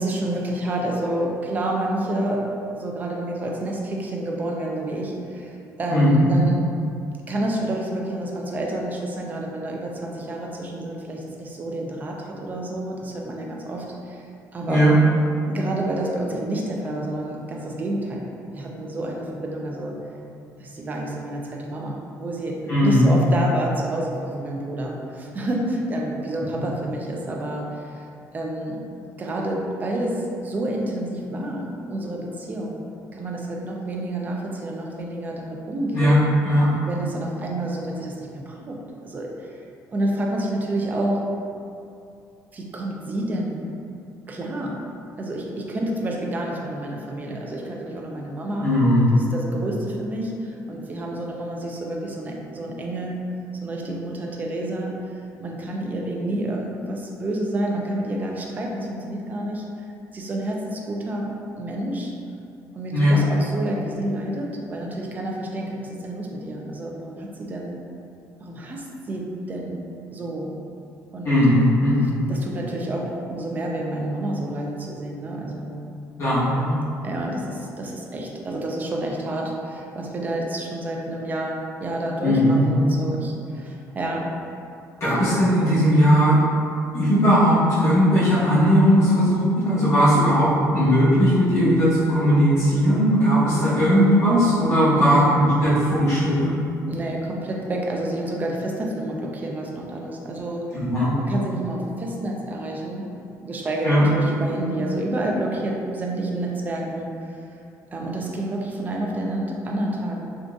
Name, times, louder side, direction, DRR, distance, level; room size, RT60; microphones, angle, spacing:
voice 1, 0.0-2.5 2.7-6.6 7.3-14.2 14.5-14.9 15.5-20.0 20.6-28.0 28.3-28.8 29.2-32.8 33.1-36.2 36.8-39.6 39.9-41.2 42.5-43.6 44.3-44.8 45.2-48.7 49.1-53.2 53.6-59.6 60.1-62.1 62.7-67.8 68.4-69.8 70.1-70.5 71.1-71.3 72.3-75.8 77.0-84.3 85.0-85.2 94.9-95.4 96.9-100.8 101.1-103.1 103.4-107.4 107.9-110.2, right 1 dB, 25° right, -1 dB, 0.4 m, -29 dB
voice 2, 5.9-6.3 14.7-15.0 22.7-23.2 35.9-36.2 36.4-36.7 48.6-49.2 62.9-63.2 71.2-72.1 76.2-76.7 82.2-82.7 85.0-86.4 86.9-96.5 100.7-101.1 103.8-104.1, equal, 45° left, -11 dB, 1.1 m, -18 dB
3.8 x 2.4 x 2.3 m, 2.5 s
cardioid pair, 140°, 7 cm